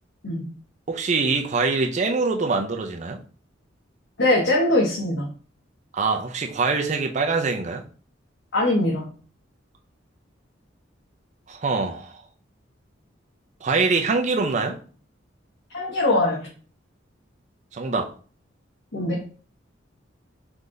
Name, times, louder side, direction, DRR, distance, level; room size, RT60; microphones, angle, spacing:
voice 1, 0.9-3.2 5.9-7.8 11.5-12.2 13.6-14.8 17.7-18.1, right 4 dB, 40° right, 0.5 m, -24 dB
voice 2, 4.2-5.3 8.5-9.1 15.7-16.5 18.9-19.3, left 1 dB, 65° left, 1.0 m, -22 dB
4.0 x 3.4 x 3.8 m
head